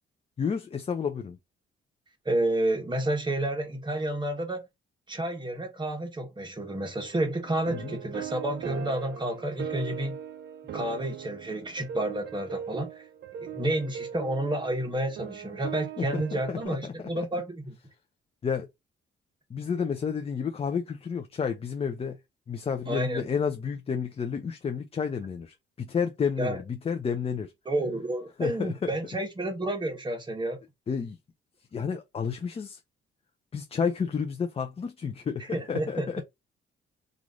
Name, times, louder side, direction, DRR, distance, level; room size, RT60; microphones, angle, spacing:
voice 1, 0.4-1.4 7.7-7.9 16.0-16.9 18.4-18.7 19.5-22.2 22.5-27.5 28.4-28.9 30.9-31.2 31.7-32.8 33.5-36.2, left 6 dB, 30° left, 0.5 m, -31 dB
voice 2, 2.2-4.6 5.1-10.2 10.7-13.0 13.4-17.7 22.9-23.2 26.4-26.6 27.6-30.6 35.5-36.2, right 1 dB, 25° right, 1.2 m, -30 dB
sound 1, 7.4-16.7, right 9 dB, 65° right, 0.6 m, -40 dB
3.0 x 2.5 x 3.7 m
cardioid pair, 90°, 20 cm